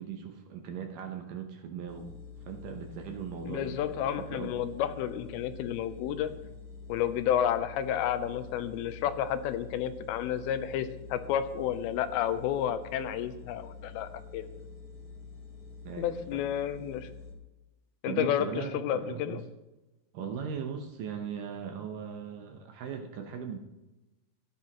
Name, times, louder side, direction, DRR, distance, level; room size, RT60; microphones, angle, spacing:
voice 1, 0.0-2.1 2.5-4.5 15.8-16.4 18.1-19.4 20.1-23.6, right 7 dB, 70° right, 4 dB, 2.2 m, -39 dB
sound 1, 1.9-17.3, left 4 dB, 45° left, 1.2 m, -47 dB
voice 2, 3.5-6.3 6.9-14.5 16.0-17.1 18.0-19.4, left 10 dB, 85° left, 10 dB, 2.5 m, -31 dB
15.0 x 10.5 x 3.0 m, 1.0 s
omnidirectional pair, 4.5 m